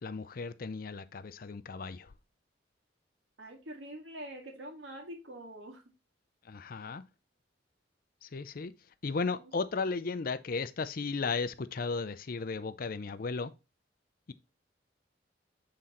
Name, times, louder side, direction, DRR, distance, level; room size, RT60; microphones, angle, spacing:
voice 1, 0.0-2.1 6.4-7.0 8.2-8.7 9.0-13.5 14.3-14.4, left 4 dB, 50° left, 0.5 m, -35 dB
voice 2, 3.4-5.8 9.3-9.5, right 1 dB, 80° right, 2.0 m, -45 dB
7.5 x 3.8 x 4.1 m
head